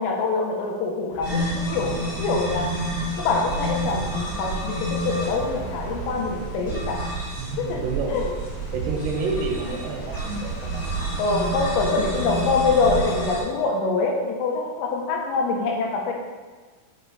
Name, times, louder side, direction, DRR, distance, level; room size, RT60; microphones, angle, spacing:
voice 1, 0.0-2.7 3.2-7.0 7.6-7.8 8.1-8.3 11.2-16.1, left 3 dB, 90° left, 0 dB, 3.7 m, -25 dB
sound 1, 1.1-13.3, left 2 dB, 75° left, 2.3 m, -43 dB
sound 2, 1.2-13.4, right 1 dB, 35° left, 2.0 m, -29 dB
voice 2, 7.4-8.2 8.7-11.1, right 4 dB, 70° right, 0 dB, 2.8 m, -29 dB
7.4 x 5.1 x 4.2 m, 1.4 s
omnidirectional pair, 5.7 m